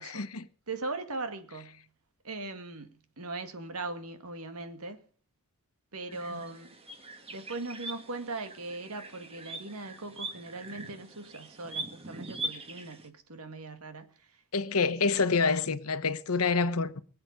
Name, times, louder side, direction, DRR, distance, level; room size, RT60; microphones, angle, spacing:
voice 1, 0.1-0.5 6.3-6.4 14.5-17.0, left 4 dB, 85° left, 1.1 m, -27 dB
voice 2, 0.7-1.8 2.2-5.0 5.9-6.7 7.3-14.1 14.8-14.9, right 3 dB, 90° right, 1.9 m, -39 dB
sound 1, 6.1-13.1, right 2 dB, 25° right, 1.6 m, -42 dB
23.0 x 8.0 x 5.2 m
head